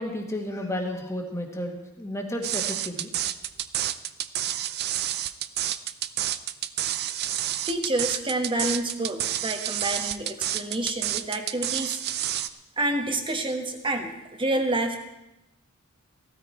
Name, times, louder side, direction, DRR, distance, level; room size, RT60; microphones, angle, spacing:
voice 1, 0.0-3.1, left 1 dB, 15° left, 2 dB, 1.8 m, -32 dB
sound 1, 2.4-12.5, right 12 dB, 50° right, 0.5 m, -29 dB
voice 2, 7.7-12.0 12.8-15.0, right 1 dB, 25° right, 5 dB, 1.3 m, -28 dB
15.5 x 13.0 x 4.4 m, 0.93 s
head